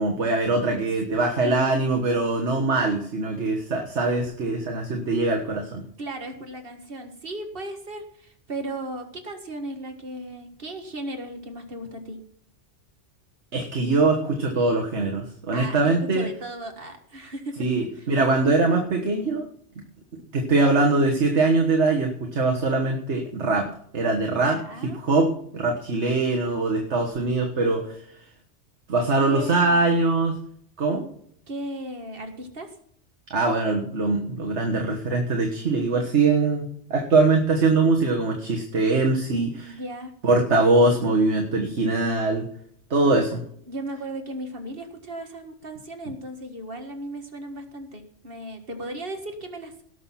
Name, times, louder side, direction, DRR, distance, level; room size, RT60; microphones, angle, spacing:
voice 1, 0.0-5.8 13.5-16.3 17.6-19.5 20.3-28.0 28.9-30.4 30.8-31.1 33.3-39.7 40.2-42.5 42.9-43.4, right 3 dB, 70° right, 1 dB, 1.8 m, -22 dB
voice 2, 1.4-1.8 6.0-12.2 15.5-17.6 18.0-18.1 24.4-25.0 29.0-29.9 31.5-32.7 39.7-40.1 43.7-49.8, right 1 dB, 50° right, 5 dB, 1.9 m, -36 dB
18.5 x 6.4 x 5.8 m, 0.65 s
omnidirectional pair, 1.2 m